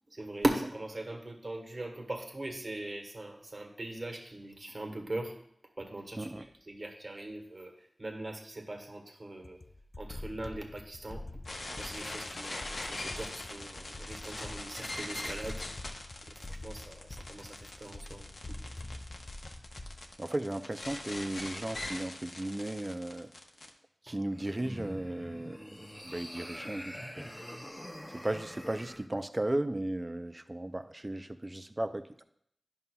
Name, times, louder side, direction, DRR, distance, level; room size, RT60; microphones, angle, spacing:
voice 1, 0.1-5.3 5.8-9.6 10.0-11.2 11.8-15.6 16.3-18.6 24.1-24.2, right 1 dB, 50° right, 3 dB, 1.4 m, -39 dB
sound 1, 9.4-20.1, left 2 dB, 45° left, 0.3 m, -46 dB
sound 2, 11.5-23.7, left 2 dB, 85° left, 0.9 m, -42 dB
voice 2, 20.2-23.3 24.0-27.3 28.2-32.2, right 1 dB, 30° right, 9 dB, 0.5 m, -36 dB
sound 3, 24.3-29.1, equal, 15° left, 0.8 m, -45 dB
11.0 x 5.5 x 2.3 m, 0.69 s
cardioid pair, 45°, 0 cm